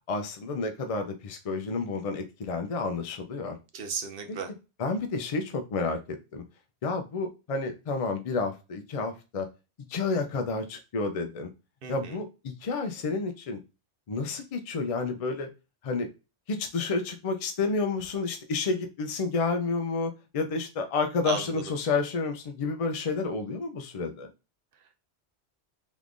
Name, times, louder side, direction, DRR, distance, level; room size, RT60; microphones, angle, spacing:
voice 1, 0.1-3.6 4.3-4.4 4.8-6.0 6.3-6.4 6.8-9.5 9.9-11.5 11.9-13.6 14.1-15.5 15.8-16.1 16.5-24.3, left 4 dB, 55° left, 5 dB, 0.4 m, -30 dB
voice 2, 3.7-4.5 11.8-12.2 21.3-21.6, right 5 dB, 65° right, 5 dB, 0.8 m, -35 dB
3.6 x 3.0 x 2.5 m, 0.29 s
omnidirectional pair, 1.1 m